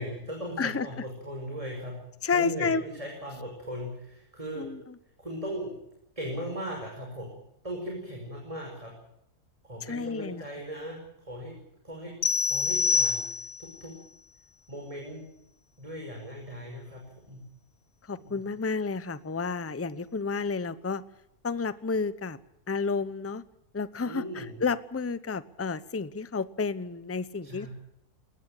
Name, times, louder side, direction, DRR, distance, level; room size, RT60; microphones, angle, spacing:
voice 1, 0.0-1.9 2.3-4.7 5.2-5.7 6.2-7.3 7.6-8.9 9.6-11.5 11.8-12.1 12.5-13.3 13.6-13.9 14.7-15.2 15.8-17.4 18.1-18.4 24.0-24.5 27.4-27.7, equal, 20° right, 0 dB, 5.9 m, -38 dB
voice 2, 0.6-1.0 2.2-2.8 4.5-5.0 9.8-10.4 18.1-21.0 21.4-22.4 22.7-23.4 23.7-27.7, left 4 dB, 15° left, 15 dB, 0.6 m, -31 dB
sound 1, 12.2-13.8, left 5 dB, 60° left, 1.5 m, -26 dB
20.5 x 20.0 x 8.9 m, 0.77 s
omnidirectional pair, 1.7 m